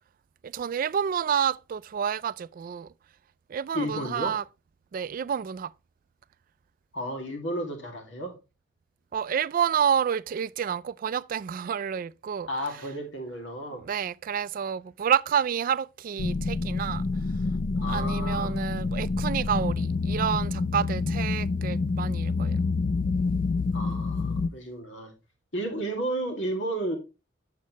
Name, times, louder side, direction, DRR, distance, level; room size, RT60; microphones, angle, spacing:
voice 1, 0.4-2.9 3.5-4.4 4.9-5.7 9.1-12.5 13.8-17.0 17.9-22.6, right 8 dB, 50° right, 0.3 m, -29 dB
voice 2, 3.7-4.4 6.9-8.4 12.5-13.8 17.8-18.6 23.7-25.1 25.5-27.0, right 1 dB, 80° left, 2.1 m, -32 dB
sound 1, 16.2-24.5, left 3 dB, 45° left, 0.4 m, -27 dB
7.5 x 7.4 x 3.0 m
head